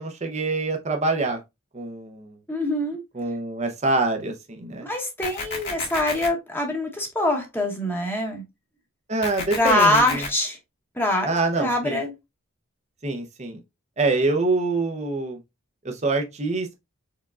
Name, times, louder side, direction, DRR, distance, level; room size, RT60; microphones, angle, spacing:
voice 1, 0.0-1.4 1.7-2.4 3.1-4.9 9.1-10.2 11.3-12.0 13.0-13.6 14.0-15.4 15.8-16.7, right 3 dB, 30° right, 0.7 m, -25 dB
voice 2, 2.5-3.0 4.8-8.4 9.6-10.6 10.9-12.1, left 1 dB, 10° left, 1.0 m, -24 dB
sound 1, 5.2-6.3 9.2-10.3, left 3 dB, 55° left, 1.9 m, -31 dB
4.7 x 3.6 x 2.4 m
head